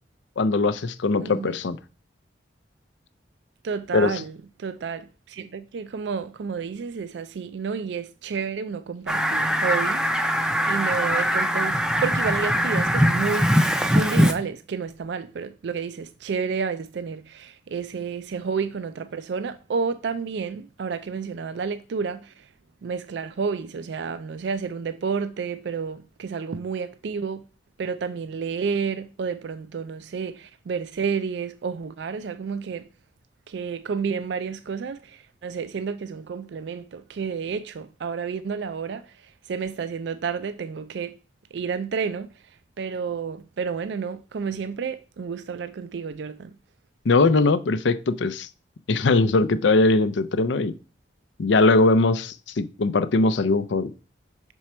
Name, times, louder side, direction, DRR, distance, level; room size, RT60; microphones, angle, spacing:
voice 1, 0.4-1.8 3.9-4.1 47.1-48.5 48.9-50.7 51.4-53.9, left 3 dB, 75° left, 0.5 m, -20 dB
voice 2, 1.2-1.6 3.6-22.5 22.8-27.5 27.8-32.9 33.5-41.2 41.5-42.3 42.8-46.6, right 5 dB, 70° right, 0.4 m, -30 dB
Fowl, 9.1-14.3, equal, 5° right, 0.4 m, -22 dB
6.0 x 4.5 x 4.3 m
head